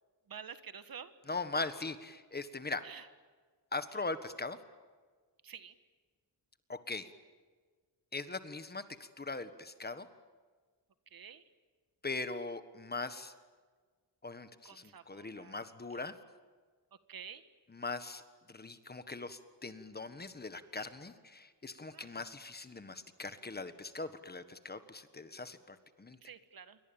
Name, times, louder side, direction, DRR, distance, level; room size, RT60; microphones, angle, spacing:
voice 1, 0.3-1.1 2.8-3.0 5.4-5.7 11.1-11.4 14.6-15.6 17.1-17.4 21.9-22.1 26.2-26.8, right 7 dB, 55° right, 12 dB, 1.6 m, -49 dB
voice 2, 1.3-2.8 3.7-4.6 6.7-7.1 8.1-8.8 9.2-10.1 12.0-13.3 14.2-16.1 17.7-18.2 18.5-26.2, left 3 dB, 25° left, 11 dB, 1.5 m, -40 dB
28.0 x 24.5 x 8.9 m, 1.5 s
wide cardioid pair, 175°, 42 cm